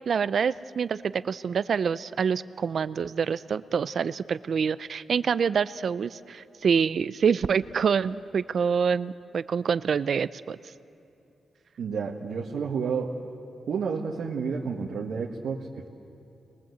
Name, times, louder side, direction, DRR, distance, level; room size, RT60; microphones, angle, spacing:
voice 1, 0.1-10.6, right 6 dB, 60° right, 16 dB, 0.5 m, -26 dB
voice 2, 11.8-13.2 13.7-15.9, right 5 dB, 75° right, -2 dB, 1.7 m, -30 dB
30.0 x 22.0 x 8.0 m, 2.8 s
wide cardioid pair, 115°, 0 cm